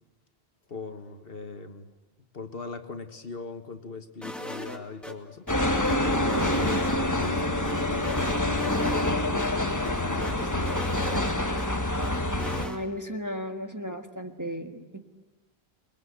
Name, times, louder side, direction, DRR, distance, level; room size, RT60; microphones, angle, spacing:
voice 1, 0.7-1.9 2.3-5.5 6.0-9.5 9.8-10.7, left 4 dB, 60° left, 7 dB, 1.7 m, -39 dB
sound 1, 4.2-5.1 5.5-7.3 7.6-9.1 9.4-9.5 9.8-11.7 12.0-12.8, equal, ahead, 2.3 m, -39 dB
sound 2, 5.5-12.7, left 1 dB, 15° left, 1.3 m, -26 dB
voice 2, 12.6-15.0, equal, 15° right, 4 dB, 1.6 m, -35 dB
28.5 x 21.5 x 8.2 m, 1.1 s
omnidirectional pair, 1.1 m